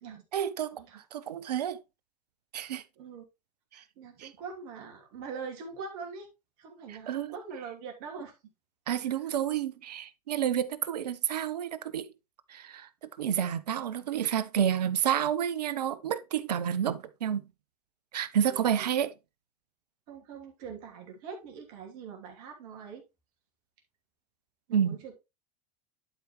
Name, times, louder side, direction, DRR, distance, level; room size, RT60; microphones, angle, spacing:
voice 1, 0.3-1.8 2.5-2.8 3.7-3.8 4.2-4.3 6.9-7.3 8.9-12.1 12.5-17.4 18.1-19.1 24.7-25.0, right 9 dB, 80° right, 0.8 m, -30 dB
voice 2, 3.7-6.3 6.6-8.4 9.0-9.3 18.5-18.8 20.1-23.0 24.7-25.2, right 5 dB, 60° right, 2.7 m, -43 dB
11.0 x 4.8 x 3.1 m
hypercardioid pair, 90°, 20 cm